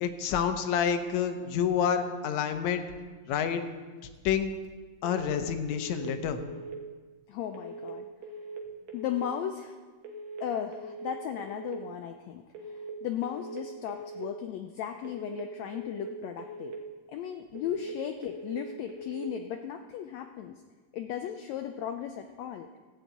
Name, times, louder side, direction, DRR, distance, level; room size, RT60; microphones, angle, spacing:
voice 1, 0.0-2.8 3.3-3.6 4.3-4.5 5.0-6.4, left 8 dB, 70° left, 7 dB, 1.9 m, -28 dB
sound 1, 5.0-5.4 5.7-6.1 6.4-6.8 7.5-7.9 8.2-8.6 8.9-9.3 10.0-10.4 10.7-11.1 11.4-11.8 12.5-12.9 13.2-13.6 13.9-14.3 15.0-15.4 15.7-16.1 16.4-16.8 17.6-18.0 18.2-18.6 18.9-19.3, right 2 dB, 80° right, 2.8 m, -41 dB
voice 2, 7.3-8.1 8.9-9.8 10.4-16.7 17.1-20.5 20.9-22.7, left 10 dB, 90° left, 6 dB, 1.5 m, -36 dB
14.5 x 5.0 x 8.2 m, 1.4 s
omnidirectional pair, 3.8 m